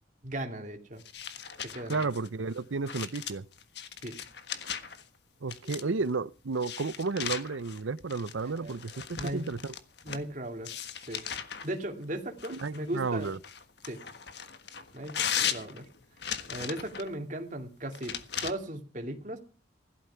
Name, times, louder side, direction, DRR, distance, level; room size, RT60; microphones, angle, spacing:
voice 1, 0.2-1.0 1.6-2.1 4.0-4.2 5.8-5.9 8.4-8.8 9.2-9.6 10.0-10.7 11.1-11.2 11.6-13.3 13.9-14.0 14.9-15.2 15.5-15.9 16.5-19.4, right 1 dB, 40° right, 2.6 m, -37 dB
sound 1, 1.0-5.0 5.5-6.1 6.6-10.3 10.6-11.7 12.4-17.1 17.9-18.5, left 8 dB, 60° left, 1.5 m, -37 dB
voice 2, 1.9-3.4 5.4-9.7 12.5-13.4, right 4 dB, 80° right, 0.7 m, -32 dB
16.0 x 12.5 x 5.8 m
head